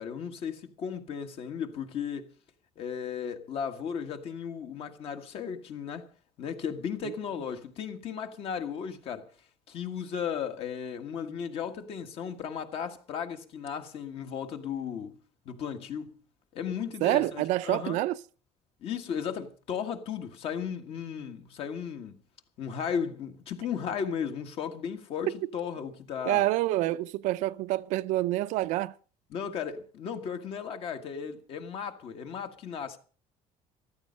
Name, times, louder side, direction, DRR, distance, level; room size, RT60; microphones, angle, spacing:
voice 1, 0.0-2.3 2.8-6.1 6.4-9.3 9.7-15.2 15.4-16.1 16.5-18.0 18.8-22.2 22.6-26.4 29.3-33.0, left 7 dB, 50° left, 1.6 m, -35 dB
voice 2, 17.0-18.2 26.3-28.9, right 16 dB, 70° right, 0.6 m, -27 dB
14.0 x 13.5 x 5.2 m
cardioid pair, 165°, 13 cm